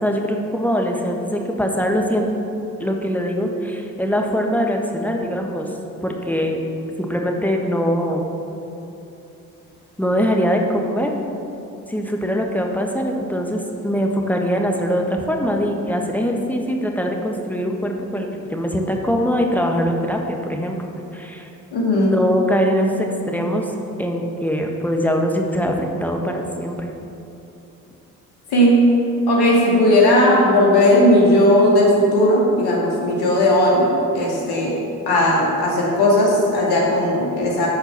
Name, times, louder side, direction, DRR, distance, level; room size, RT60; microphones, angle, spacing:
voice 1, 0.0-2.3 2.8-5.7 6.0-6.6 7.0-8.2 10.0-11.1 11.9-21.5 21.9-23.7 24.0-26.9, equal, 5° left, 1 dB, 1.4 m, -22 dB
voice 2, 21.7-22.2 28.5-28.8 29.3-33.9 34.1-34.7 35.1-37.7, left 1 dB, 80° left, -3 dB, 2.1 m, -16 dB
13.0 x 4.5 x 6.0 m, 2.9 s
hypercardioid pair, 45°, 38 cm